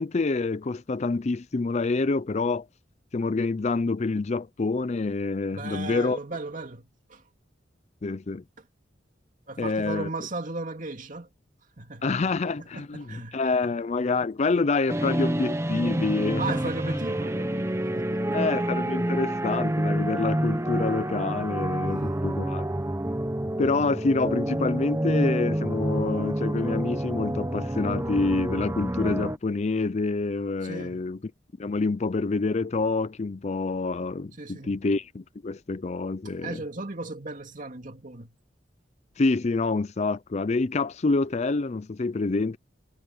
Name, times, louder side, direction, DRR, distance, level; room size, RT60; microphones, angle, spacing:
voice 1, 0.0-2.7 3.1-6.2 8.0-8.4 9.6-10.1 12.0-16.6 18.3-22.7 23.6-31.2 31.6-36.6 39.2-42.6, left 3 dB, 35° left, 0.5 m, -27 dB
voice 2, 5.5-7.2 9.5-11.3 11.8-12.3 12.6-13.4 16.4-18.4 21.8-22.3 30.6-31.1 34.4-34.8 36.4-38.3, right 3 dB, 45° right, 2.5 m, -36 dB
sound 1, 14.9-29.4, right 1 dB, 15° right, 0.9 m, -28 dB
head